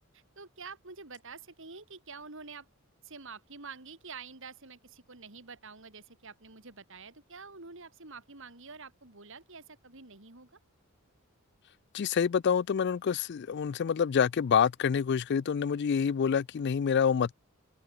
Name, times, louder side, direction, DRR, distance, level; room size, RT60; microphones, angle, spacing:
voice 1, 0.1-2.7 3.0-10.6, right 4 dB, 65° right, 3.4 m, -47 dB
voice 2, 11.9-17.3, left 7 dB, 55° left, 0.4 m, -27 dB
head